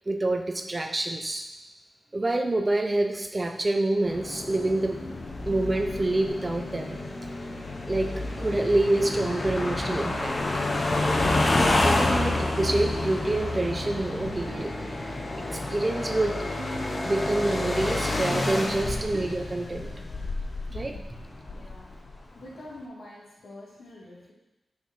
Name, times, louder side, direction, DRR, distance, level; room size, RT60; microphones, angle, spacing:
voice 1, 0.1-1.4 2.1-5.0 5.5-7.0 7.9-8.1 8.4-10.4 11.8-14.7 15.4-16.4 17.0-19.9 20.7-20.9, right 2 dB, 25° right, 5 dB, 0.7 m, -27 dB
sound 1, 4.1-22.2, left 2 dB, 40° left, 1.1 m, -29 dB
sound 2, 14.2-19.3, right 2 dB, 65° right, 1.9 m, -41 dB
voice 2, 20.7-21.1 21.5-21.9 22.3-24.3, left 1 dB, 75° left, -5 dB, 2.9 m, -46 dB
6.5 x 6.0 x 5.7 m, 0.99 s
wide cardioid pair, 115°, 0 cm